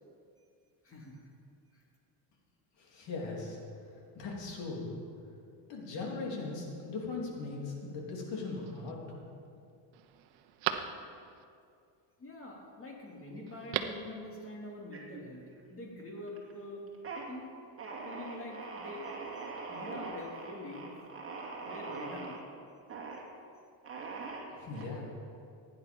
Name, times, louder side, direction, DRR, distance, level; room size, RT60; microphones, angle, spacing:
voice 1, 0.8-1.2 1.7-1.8 12.2-15.4 15.7-16.8 17.3-17.5 18.0-19.0 19.7-20.9 21.6-22.4, left 1 dB, 30° left, -1 dB, 2.8 m, -45 dB
voice 2, 2.8-4.9 5.7-9.2 24.6-25.1, left 3 dB, 65° left, -1 dB, 3.2 m, -39 dB
Telephone, 8.3-8.9 9.4-9.5 9.9-11.4 13.5-14.1 14.4-14.5, right 11 dB, 80° right, 1.0 m, -38 dB
sound 1, 14.9-15.7 16.0-16.5 16.9-17.3 17.8-22.4 22.9-23.2 23.8-24.8, right 4 dB, 30° right, 2.4 m, -42 dB
16.0 x 9.7 x 5.3 m, 2.4 s
cardioid pair, 120°, 47 cm